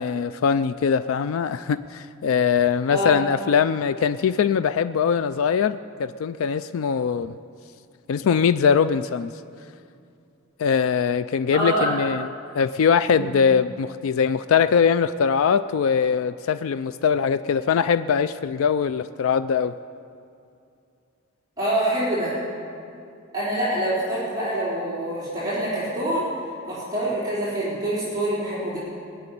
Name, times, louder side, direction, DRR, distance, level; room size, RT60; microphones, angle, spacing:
voice 1, 0.0-7.4 8.1-9.3 10.6-12.3 12.5-19.7, left 6 dB, 75° left, 12 dB, 0.3 m, -22 dB
voice 2, 11.5-11.9 13.1-13.3 21.6-22.3 23.3-26.3 26.7-28.8, right 1 dB, 20° right, -10 dB, 3.7 m, -25 dB
19.5 x 6.8 x 9.7 m, 2.5 s
head